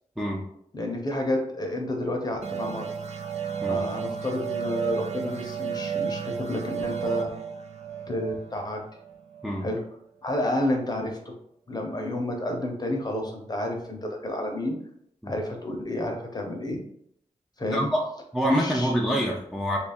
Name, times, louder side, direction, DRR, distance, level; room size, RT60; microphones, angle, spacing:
voice 1, 0.7-2.9 3.7-7.3 8.1-8.8 9.6-9.8 10.2-11.3 11.7-14.8 15.3-16.8 17.6-17.9 18.4-18.9, left 1 dB, 30° left, 2 dB, 0.8 m, -30 dB
sound 1, 2.4-9.7, right 7 dB, 60° right, 0.4 m, -32 dB
voice 2, 17.7-18.0 18.3-19.8, equal, ahead, -2 dB, 0.5 m, -26 dB
3.0 x 2.4 x 4.2 m, 0.70 s
wide cardioid pair, 105°, 13 cm